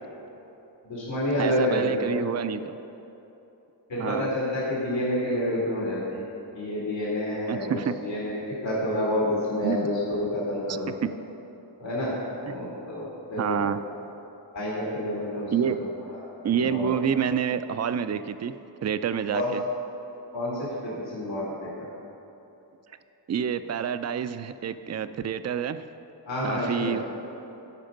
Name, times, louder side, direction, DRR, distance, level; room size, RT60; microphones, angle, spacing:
voice 1, 0.8-2.1 3.9-6.2 6.5-10.9 11.8-12.1 12.4-13.7 14.5-16.2 16.6-16.9 19.3-19.5 20.3-21.9 26.2-27.0, left 1 dB, 80° left, -7 dB, 2.2 m, -29 dB
voice 2, 1.4-2.8 4.0-4.3 7.5-7.9 9.6-9.9 11.0-11.1 12.5-12.6 13.4-13.8 15.5-15.8 16.4-18.5 18.8-19.6 23.3-25.9 26.4-27.0, right 8 dB, 40° right, 12 dB, 0.4 m, -28 dB
13.0 x 5.1 x 5.2 m, 3.0 s
cardioid pair, 45°, 44 cm